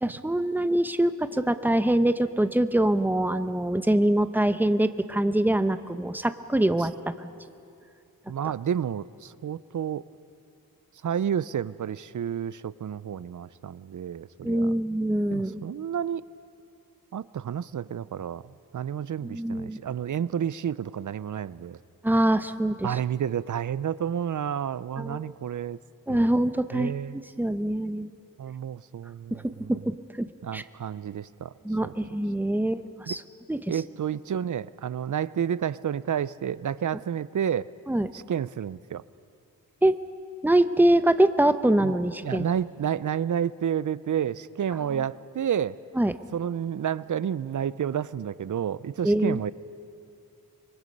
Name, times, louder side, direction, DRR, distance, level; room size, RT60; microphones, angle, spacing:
voice 1, 0.0-7.3 14.4-15.6 19.2-19.8 22.0-22.9 25.0-25.3 26.1-28.1 29.3-30.6 31.6-33.2 33.5-33.8 37.9-38.1 39.8-40.0 40.4-42.4 46.0-46.1 49.0-49.4, right 1 dB, 5° right, 11 dB, 0.7 m, -24 dB
voice 2, 8.3-10.0 11.0-14.7 15.3-16.2 17.1-18.4 18.7-21.8 22.8-25.8 26.1-26.2 26.7-27.2 28.4-29.7 30.4-31.5 31.8-31.9 33.1-33.2 33.7-37.7 38.1-39.0 41.8-45.8 46.3-49.5, right 9 dB, 60° right, 18 dB, 0.5 m, -30 dB
25.5 x 23.0 x 5.4 m, 2.6 s
wide cardioid pair, 75°, 35 cm